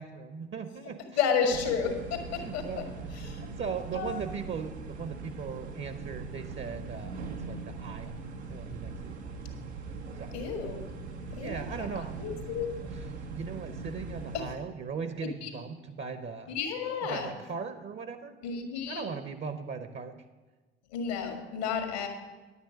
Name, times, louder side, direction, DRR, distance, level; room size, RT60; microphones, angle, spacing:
voice 1, 0.0-1.2 1.4-1.5 2.4-8.1 8.5-9.4 10.2-10.3 11.3-12.1 13.3-16.6 17.1-18.4 18.9-20.2, right 5 dB, 35° right, 10 dB, 0.8 m, -39 dB
voice 2, 1.2-2.9 3.1-3.5 3.9-4.2 10.3-10.8 11.4-11.6 12.0-12.7 14.3-14.5 15.2-15.5 16.5-17.3 18.4-19.1 20.9-22.1, left 6 dB, 75° left, 5 dB, 1.8 m, -32 dB
sound 1, 1.5-14.6, right 4 dB, 85° right, 0.9 m, -41 dB
10.0 x 8.3 x 5.1 m, 1.3 s
figure-of-eight pair, 55°, 33 cm